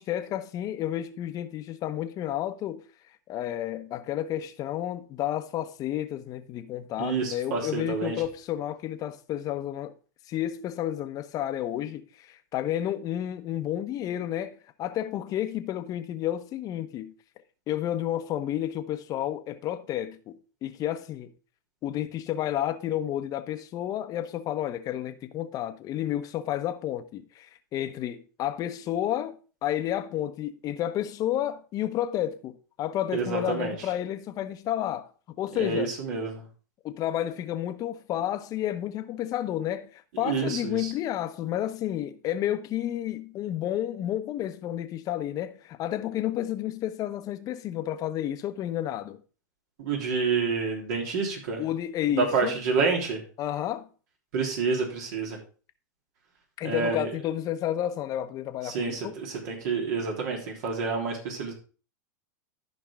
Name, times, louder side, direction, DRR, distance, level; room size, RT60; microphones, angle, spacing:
voice 1, 0.0-2.8 3.3-9.9 10.3-17.1 17.7-21.3 21.8-29.4 29.6-35.1 35.4-35.9 36.8-49.2 51.6-52.6 53.4-53.9 56.6-59.1, left 12 dB, 35° left, 1.0 m, -31 dB
voice 2, 7.0-8.1 33.1-33.7 35.6-36.5 40.2-40.9 49.8-51.6 52.1-53.2 54.3-55.4 56.6-57.1 58.6-61.5, right 4 dB, 60° right, 3.5 m, -28 dB
13.0 x 5.3 x 3.7 m
hypercardioid pair, 115°, 10 cm